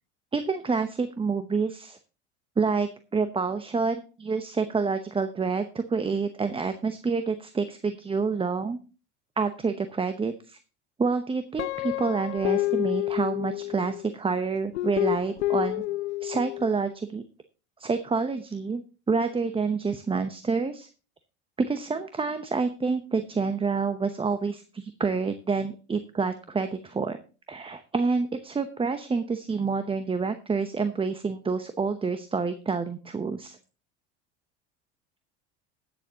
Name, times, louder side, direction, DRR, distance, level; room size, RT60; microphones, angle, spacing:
voice 1, 0.3-2.0 2.6-8.8 9.4-10.6 11.0-15.8 16.2-17.2 17.8-18.8 19.1-20.9 21.6-27.2 27.5-33.6, right 4 dB, 15° right, 10 dB, 0.8 m, -28 dB
Guitar, 11.6-14.0 14.7-16.7, left 17 dB, 85° left, 0.5 m, -29 dB
20.5 x 7.0 x 2.8 m, 0.34 s
hypercardioid pair, 80°, 34 cm